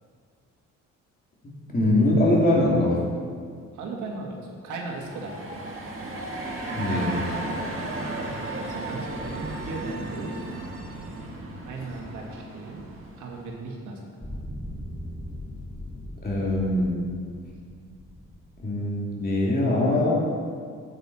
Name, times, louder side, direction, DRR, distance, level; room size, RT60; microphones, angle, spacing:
voice 1, 1.7-3.0 6.8-7.1 16.2-17.0 18.6-20.1, left 1 dB, 30° left, -4 dB, 2.8 m, -22 dB
voice 2, 3.7-5.7 8.4-10.4 11.7-12.8 13.2-14.0, right 3 dB, 80° right, 0 dB, 1.7 m, -36 dB
sound 1, 4.8-13.5, right 2 dB, 45° right, 2.0 m, -34 dB
sound 2, 14.2-19.1, equal, 5° left, 1.2 m, -39 dB
9.1 x 8.3 x 4.2 m, 2.1 s
cardioid pair, 90°, 30 cm